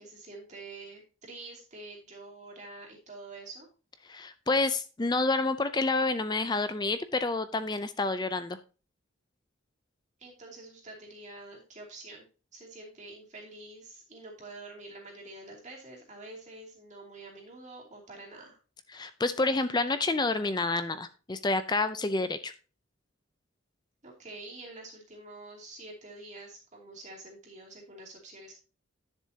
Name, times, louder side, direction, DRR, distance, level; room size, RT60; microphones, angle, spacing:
voice 1, 0.0-3.7 10.2-12.3 12.5-18.6 24.0-28.5, right 2 dB, 35° right, -2 dB, 2.7 m, -47 dB
voice 2, 4.1-8.6 18.9-22.5, left 3 dB, 20° left, 11 dB, 0.5 m, -29 dB
10.5 x 6.9 x 2.8 m, 0.35 s
head